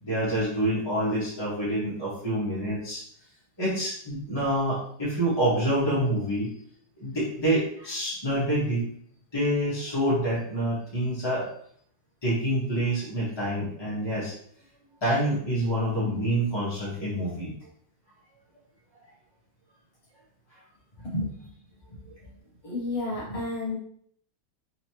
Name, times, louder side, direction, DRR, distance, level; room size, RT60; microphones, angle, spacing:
voice 1, 0.0-3.0 3.6-6.5 7.0-8.8 9.3-11.5 12.2-14.3 15.0-17.5 20.5-20.6, right 1 dB, 15° left, -9 dB, 1.0 m, -27 dB
voice 2, 21.0-21.5 22.2-22.3 22.6-23.8, left 2 dB, 35° left, -7 dB, 0.5 m, -31 dB
3.9 x 3.1 x 2.9 m, 0.63 s
omnidirectional pair, 2.1 m